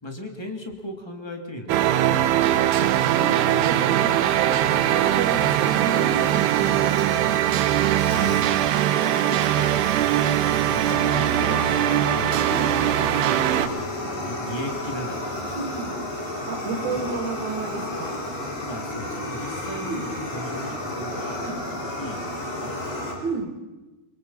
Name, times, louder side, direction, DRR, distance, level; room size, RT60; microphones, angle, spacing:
voice 1, 0.0-2.9 7.4-8.1 9.0-12.4 13.3-15.8 16.9-17.1 18.7-21.4 21.8-22.2 22.6-23.2, equal, 10° left, 3 dB, 1.6 m, -37 dB
sound 1, 1.7-13.7, right 12 dB, 80° right, 2.9 m, -21 dB
voice 2, 3.1-6.9 12.5-12.7 15.5-15.9 16.5-18.2 19.9-20.0 21.4-21.6 23.2-23.5, right 4 dB, 50° right, 4 dB, 3.4 m, -31 dB
Fire, 4.5-23.1, left 1 dB, 70° left, 7.0 m, -33 dB
28.0 x 24.0 x 5.6 m, 1.1 s
omnidirectional pair, 4.9 m